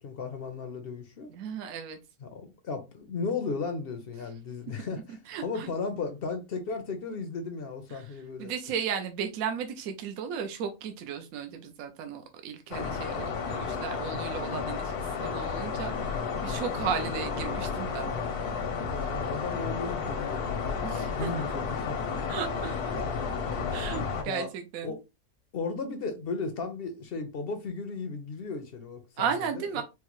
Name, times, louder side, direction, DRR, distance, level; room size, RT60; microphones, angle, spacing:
voice 1, 0.0-1.3 2.2-8.5 18.9-22.0 22.9-23.2 24.3-24.5 24.8-25.0 25.5-29.8, left 4 dB, 60° left, 0.6 m, -35 dB
voice 2, 1.3-2.0 5.3-5.7 7.9-8.1 8.4-18.1 20.8-21.5 22.3-22.9 23.7-24.9 29.2-29.8, right 7 dB, 70° right, 1.0 m, -35 dB
sound 1, 12.7-24.2, left 5 dB, 85° left, 1.3 m, -32 dB
4.5 x 2.0 x 3.0 m
omnidirectional pair, 1.6 m